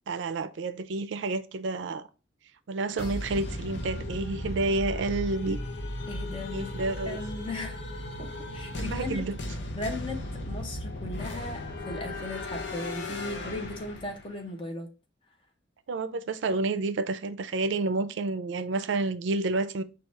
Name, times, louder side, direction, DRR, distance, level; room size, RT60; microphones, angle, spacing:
voice 1, 0.1-2.1 2.7-5.6 6.5-7.2 8.7-9.4 15.9-19.8, right 3 dB, 70° right, 0.4 m, -29 dB
sound 1, 3.0-14.4, left 1 dB, 60° left, 0.7 m, -36 dB
voice 2, 6.1-6.7 7.1-7.8 8.5-9.2 9.7-14.9, left 2 dB, 30° left, 0.8 m, -37 dB
4.6 x 2.4 x 4.2 m
head